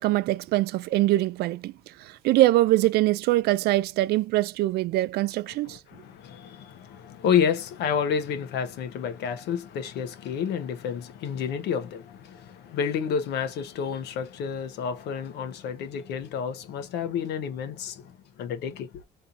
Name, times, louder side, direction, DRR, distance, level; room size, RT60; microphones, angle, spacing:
voice 1, 0.0-1.7 2.0-5.8, right 16 dB, 70° right, 0.4 m, -23 dB
voice 2, 5.6-19.0, left 7 dB, 80° left, 0.9 m, -30 dB
3.2 x 2.7 x 3.8 m
cardioid pair, 110°, 17 cm